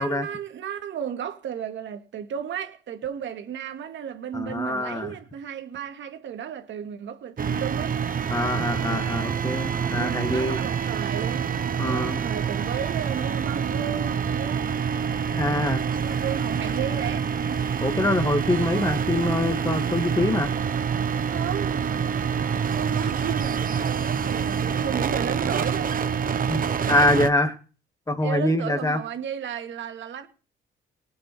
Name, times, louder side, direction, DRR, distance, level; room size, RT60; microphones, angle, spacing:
voice 1, 0.0-8.0 9.9-11.5 11.8-14.7 15.9-17.6 20.7-20.8 21.2-26.3 28.2-30.3, right 8 dB, 70° right, 2.4 m, -34 dB
voice 2, 4.3-5.2 8.3-10.6 11.8-12.3 15.3-15.8 17.8-20.5 26.5-26.6 26.9-27.6 28.1-29.0, left 1 dB, 15° left, 2.3 m, -24 dB
sound 1, 7.4-27.3, right 7 dB, 45° right, 1.3 m, -26 dB
19.5 x 9.0 x 4.7 m
cardioid pair, 90°, 20 cm